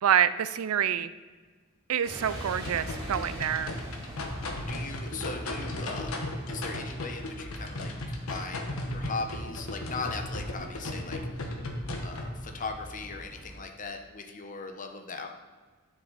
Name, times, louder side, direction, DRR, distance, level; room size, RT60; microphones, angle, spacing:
voice 1, 0.0-1.1 1.9-3.7, right 9 dB, 80° right, 14 dB, 0.4 m, -26 dB
sound 1, 2.0-13.6, equal, 25° right, 3.0 m, -44 dB
sound 2, 2.6-12.3, left 1 dB, 75° left, 1.2 m, -36 dB
voice 2, 4.6-11.5 12.0-15.3, left 4 dB, 35° left, 5 dB, 0.9 m, -39 dB
11.0 x 6.3 x 4.0 m, 1.4 s
head